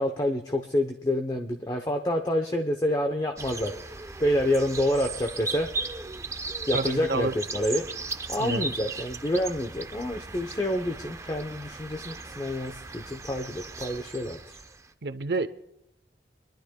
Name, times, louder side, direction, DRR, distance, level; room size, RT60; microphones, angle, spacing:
voice 1, 0.0-3.7 4.2-5.7 6.7-7.9 8.3-14.6, left 1 dB, 20° left, 0.7 m, -28 dB
sound 1, 3.4-14.9, right 3 dB, 15° right, 0.4 m, -37 dB
voice 2, 6.7-7.4 8.4-8.7 15.0-15.5, right 3 dB, 65° right, 0.7 m, -29 dB
25.0 x 11.5 x 2.2 m
head